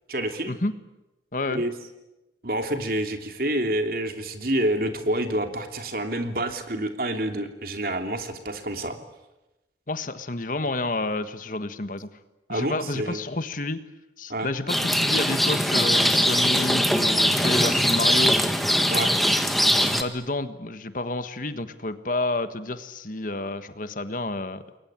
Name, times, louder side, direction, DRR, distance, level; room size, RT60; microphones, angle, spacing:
voice 1, 0.1-0.6 1.5-1.7 2.4-9.0 12.5-13.2 14.3-14.5 18.9-19.1, right 1 dB, 55° right, 6 dB, 3.1 m, -28 dB
voice 2, 1.3-1.6 9.9-12.1 12.5-13.8 14.2-18.4 19.2-24.6, left 2 dB, 50° left, 11 dB, 1.5 m, -30 dB
Rain, 14.7-20.0, equal, ahead, 1.7 m, -21 dB
29.0 x 22.5 x 9.0 m, 0.99 s
head